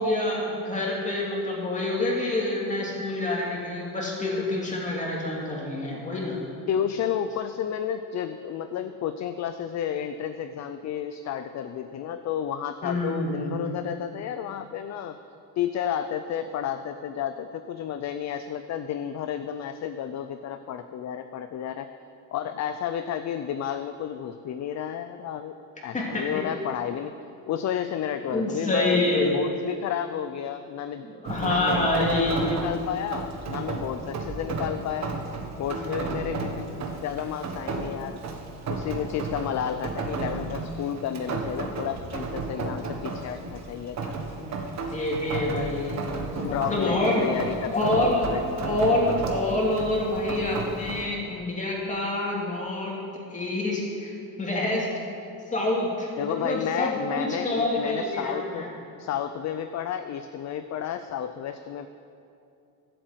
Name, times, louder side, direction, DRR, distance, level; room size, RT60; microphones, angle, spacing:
voice 1, 0.0-6.4 12.8-13.7 25.9-26.4 28.3-29.3 31.1-32.5 35.8-36.3 44.4-46.0 46.4-47.3 47.7-48.3 48.6-53.0 53.3-54.1 54.4-54.9 55.5-58.7, left 1 dB, 20° left, -3 dB, 2.6 m, -27 dB
voice 2, 6.7-15.2 15.6-21.9 22.3-25.6 25.8-27.2 27.5-31.1 31.4-35.2 35.5-36.7 37.0-38.2 38.7-44.2 46.4-48.4 48.7-48.8 56.2-58.7 59.0-61.9, left 9 dB, 45° left, 9 dB, 0.5 m, -31 dB
Rain, 31.3-51.0, right 3 dB, 45° right, 1.5 m, -33 dB
12.5 x 7.8 x 8.0 m, 2.7 s
cardioid pair, 155°, 38 cm